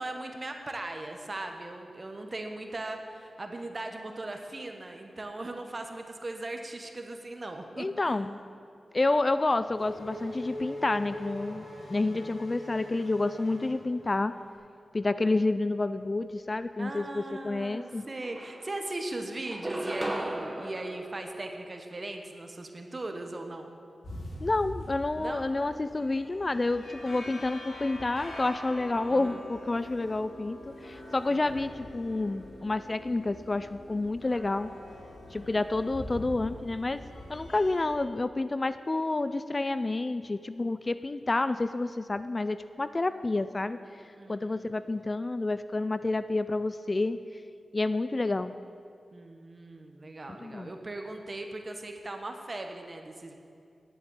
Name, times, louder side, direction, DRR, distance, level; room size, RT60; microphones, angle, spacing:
voice 1, 0.0-8.2 12.0-12.3 16.8-23.7 25.1-25.5 29.1-29.4 31.3-31.4 35.3-35.6 44.2-44.7 49.1-53.4, right 2 dB, 35° right, 4 dB, 1.3 m, -39 dB
voice 2, 7.8-8.4 8.9-14.4 14.9-18.1 24.4-34.7 35.3-37.0 37.3-43.8 44.3-47.2 47.7-48.5 50.4-50.7, left 2 dB, 35° left, 12 dB, 0.3 m, -29 dB
Race car auto racing / Accelerating revving vroom, 9.2-14.4, equal, 55° left, 3.7 m, -42 dB
sound 1, 17.8-17.9 18.2-19.0 19.5-22.1, right 1 dB, 15° right, 1.1 m, -36 dB
sound 2, 24.0-37.8, left 1 dB, 80° left, 2.7 m, -44 dB
10.0 x 7.6 x 9.0 m, 2.4 s
wide cardioid pair, 80°, 0 cm